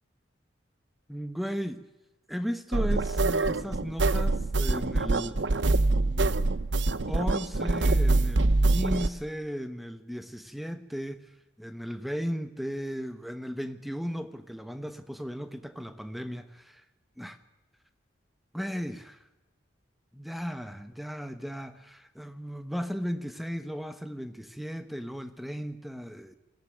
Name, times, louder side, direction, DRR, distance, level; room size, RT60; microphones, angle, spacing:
voice 1, 1.1-1.8 2.3-5.4 5.8-6.4 7.1-11.3 11.6-16.8 17.2-17.4 18.5-19.2 20.1-26.3, equal, ahead, 9 dB, 1.2 m, -36 dB
sound 1, 2.7-9.1, right 2 dB, 75° right, 0.9 m, -25 dB
22.0 x 17.0 x 9.3 m, 1.1 s
head